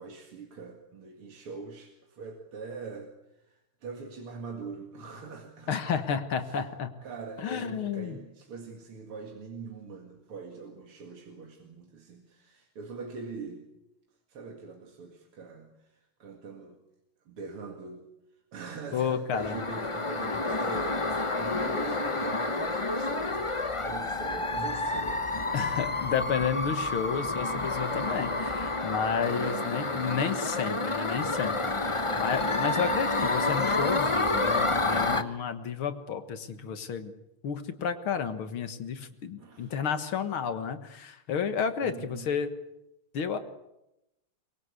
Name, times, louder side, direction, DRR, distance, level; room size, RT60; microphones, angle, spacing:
voice 1, 0.0-6.0 6.3-6.7 7.0-13.7 14.3-16.8 17.3-18.1 18.5-25.5 27.9-28.3 29.2-30.1 31.8-32.9 39.4-39.7 41.8-42.3, right 4 dB, 80° right, 2 dB, 3.0 m, -43 dB
voice 2, 5.7-6.9 7.4-8.2 18.9-19.6 25.5-37.1 37.4-42.5 43.1-43.4, left 7 dB, 70° left, 10 dB, 2.3 m, -31 dB
sound 1, 19.3-35.2, left 2 dB, 25° left, 0.6 m, -29 dB
23.5 x 22.0 x 8.3 m, 0.89 s
omnidirectional pair, 2.4 m